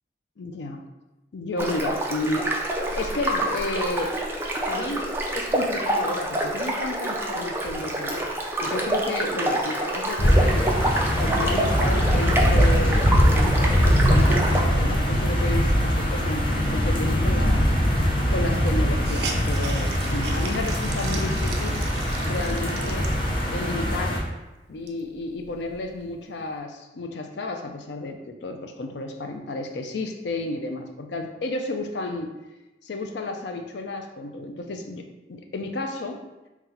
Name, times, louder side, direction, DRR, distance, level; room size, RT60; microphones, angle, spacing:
voice 1, 0.4-0.8 1.3-2.5 2.9-4.1 4.7-5.1 5.3-8.2 8.6-10.7 11.1-17.7 18.3-21.8 22.3-23.1 23.5-24.2 24.7-32.3 32.8-35.0 35.3-36.2, left 2 dB, 85° left, 5 dB, 0.5 m, -32 dB
sound 1, 1.6-14.6, right 1 dB, 15° right, 0.4 m, -27 dB
sound 2, 10.2-24.2, equal, 30° left, 0.6 m, -22 dB
Hiss, 17.8-17.9 18.1-18.2 18.6-23.6 24.2-24.3 24.7-26.0, right 4 dB, 65° right, 0.5 m, -38 dB
3.9 x 2.3 x 4.2 m, 1.1 s
head